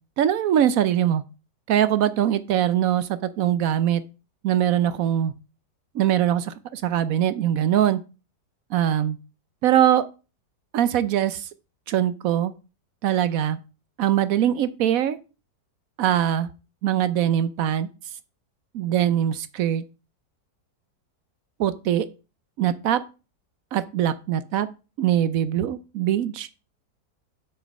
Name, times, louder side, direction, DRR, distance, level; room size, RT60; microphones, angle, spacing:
voice 1, 0.2-1.2 1.7-4.0 4.4-5.3 5.9-8.0 8.7-9.2 9.6-10.1 10.7-11.5 11.9-12.5 13.0-13.6 14.0-15.2 16.0-16.5 16.8-17.9 18.7-19.8 21.6-22.1 22.6-23.0 23.7-24.7 25.0-26.5, right 11 dB, 70° right, 14 dB, 0.9 m, -22 dB
7.7 x 6.2 x 5.3 m, 0.32 s
omnidirectional pair, 1.8 m